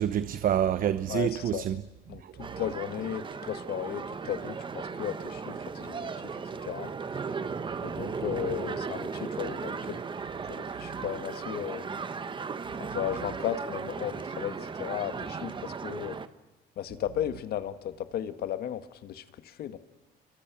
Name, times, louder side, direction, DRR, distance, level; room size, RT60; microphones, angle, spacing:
voice 1, 0.0-1.8 2.2-2.6, right 10 dB, 55° right, 1.0 m, -28 dB
voice 2, 1.1-1.7 2.1-6.9 7.8-10.0 10.4-11.9 12.8-16.2 16.8-19.8, left 11 dB, 65° left, 1.8 m, -35 dB
sound 1, 2.4-16.3, right 5 dB, 30° right, 1.2 m, -36 dB
29.5 x 24.0 x 6.2 m
cardioid pair, 110°, 17 cm